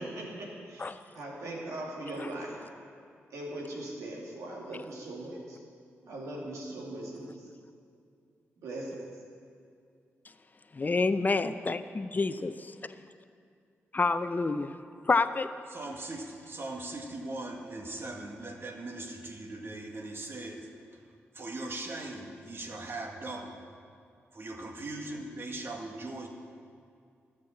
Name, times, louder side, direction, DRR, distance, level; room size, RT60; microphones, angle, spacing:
voice 1, 0.0-2.6 3.3-5.6 6.0-7.5 8.6-9.1, right 1 dB, 80° right, -3 dB, 2.6 m, -40 dB
voice 2, 10.8-12.5 13.9-14.7 15.1-15.5, left 3 dB, 35° left, 11 dB, 0.6 m, -28 dB
voice 3, 15.7-21.0 21.3-23.6 24.3-26.3, right 2 dB, 45° right, 2 dB, 1.8 m, -40 dB
12.5 x 7.4 x 7.3 m, 2.4 s
supercardioid pair, 50°, 5 cm